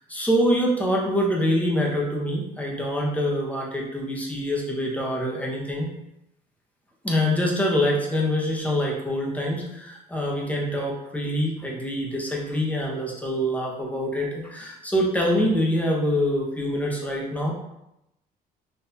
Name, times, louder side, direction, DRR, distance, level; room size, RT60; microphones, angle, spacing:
voice 1, 0.1-5.9 7.0-17.5, equal, 10° left, -2 dB, 0.8 m, -25 dB
4.0 x 2.6 x 2.7 m, 0.86 s
cardioid pair, 110°, 17 cm